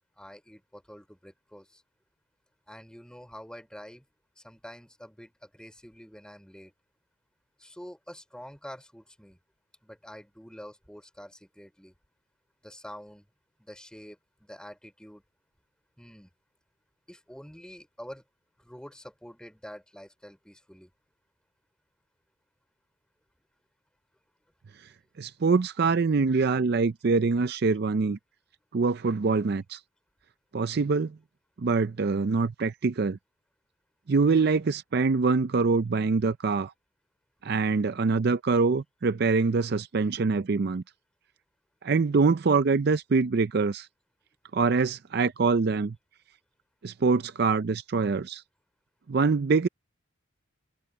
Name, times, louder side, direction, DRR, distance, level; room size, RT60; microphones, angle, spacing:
voice 1, 0.2-1.8 2.7-4.1 4.4-6.7 7.6-9.4 9.8-11.9 12.6-13.3 13.6-15.2 16.0-16.3 17.1-18.2 18.6-20.9, equal, 5° left, 4.7 m, -47 dB
voice 2, 25.2-28.2 28.7-29.8 30.5-31.2 31.6-33.2 34.1-36.7 37.4-40.8 41.8-43.9 44.5-46.0 46.8-48.4 49.1-49.7, right 4 dB, 50° right, 0.4 m, -24 dB
head